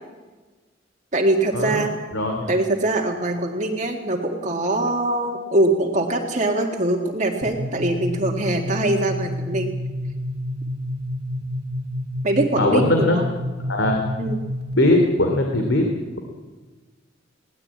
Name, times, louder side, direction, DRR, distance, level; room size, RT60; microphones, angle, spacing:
voice 1, 1.1-1.9 2.5-9.7 12.2-13.2 14.2-14.4, right 2 dB, 40° right, 0 dB, 2.0 m, -22 dB
voice 2, 2.1-2.5 12.6-13.2 13.6-14.0 14.7-15.8, left 1 dB, 80° left, 3 dB, 2.9 m, -20 dB
sound 1, 7.4-15.0, left 1 dB, 60° right, 2.1 m, -29 dB
21.0 x 18.0 x 8.7 m, 1.3 s
head